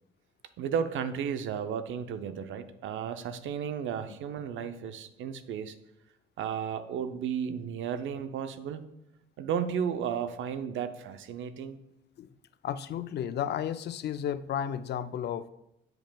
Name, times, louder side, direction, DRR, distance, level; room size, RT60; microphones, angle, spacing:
voice 1, 0.6-5.7 6.4-8.8 9.4-11.8, right 7 dB, 75° right, 10 dB, 0.6 m, -33 dB
voice 2, 12.6-15.5, left 9 dB, 55° left, 13 dB, 0.4 m, -33 dB
7.6 x 7.3 x 2.3 m, 0.86 s
cardioid pair, 90°, 20 cm